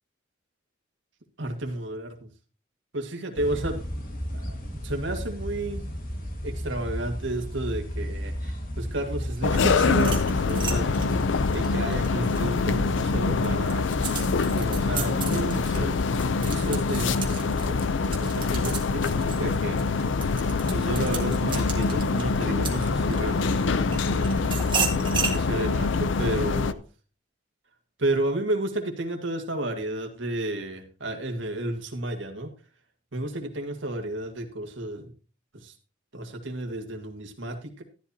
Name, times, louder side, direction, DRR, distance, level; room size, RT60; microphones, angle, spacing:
voice 1, 1.4-2.3 2.9-3.8 4.5-4.6 4.8-5.8 6.4-11.2 11.5-13.9 14.5-17.8 18.2-20.1 20.7-24.5 25.1-26.8 28.0-32.5 33.1-35.1 35.5-35.7 36.1-37.8, right 1 dB, 70° right, 4 dB, 1.8 m, -32 dB
sound 1, 3.4-11.8, equal, 45° left, 1.8 m, -33 dB
sound 2, 9.4-26.7, left 4 dB, 70° left, 0.5 m, -25 dB
sound 3, 10.0-12.8 13.2-23.4 23.9-25.4, right 6 dB, 25° right, 1.5 m, -34 dB
12.5 x 11.0 x 2.8 m, 0.35 s
head